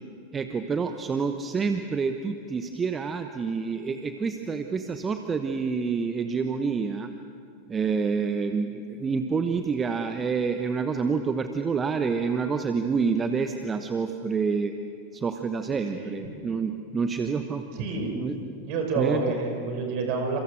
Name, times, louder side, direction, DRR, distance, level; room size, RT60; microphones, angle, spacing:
voice 1, 0.3-7.1 7.7-14.7 15.1-17.6 18.2-18.4 18.9-19.2, right 5 dB, 20° right, 7 dB, 1.1 m, -28 dB
voice 2, 17.8-18.2 18.6-20.4, right 4 dB, 45° right, 3 dB, 5.5 m, -28 dB
29.5 x 27.5 x 6.5 m, 2.6 s
figure-of-eight pair, 90°, 0 cm